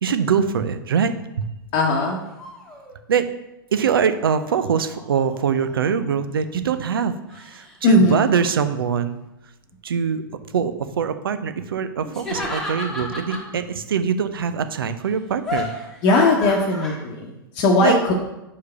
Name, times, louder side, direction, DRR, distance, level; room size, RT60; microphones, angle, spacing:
voice 1, 0.0-1.5 3.1-3.3 3.7-9.2 9.8-10.2 10.5-15.7 17.8-18.0, right 7 dB, 70° right, 11 dB, 0.6 m, -23 dB
voice 2, 1.7-2.2 7.8-8.2 13.0-13.1 16.0-18.1, left 2 dB, 40° left, 0 dB, 1.0 m, -18 dB
sound 1, 2.2-3.0 4.3-6.0 7.3-7.7 8.0-8.7 12.1-13.5 15.5-17.0, left 2 dB, 5° left, 1.4 m, -33 dB
5.1 x 4.7 x 5.4 m, 0.92 s
figure-of-eight pair, 110°, 12 cm